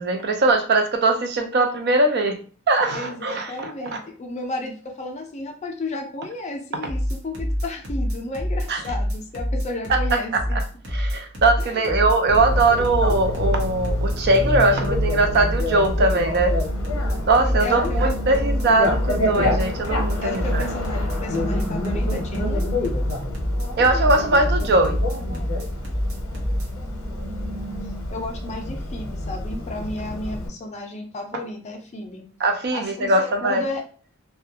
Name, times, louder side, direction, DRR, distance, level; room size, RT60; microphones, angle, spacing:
voice 1, 0.0-2.4 2.7-4.0 8.7-8.8 10.9-16.5 17.3-20.7 23.8-25.0 32.4-33.6, right 2 dB, 50° right, 5 dB, 0.4 m, -20 dB
voice 2, 2.9-10.6 11.6-12.1 17.6-18.0 20.2-22.7 28.1-32.3 32.7-33.8, left 2 dB, 30° left, 2 dB, 0.4 m, -33 dB
sound 1, 6.8-26.7, equal, 65° right, 0.8 m, -26 dB
Bicycle, 12.3-30.5, left 1 dB, 70° left, 0.7 m, -28 dB
2.3 x 2.1 x 2.7 m, 0.40 s
head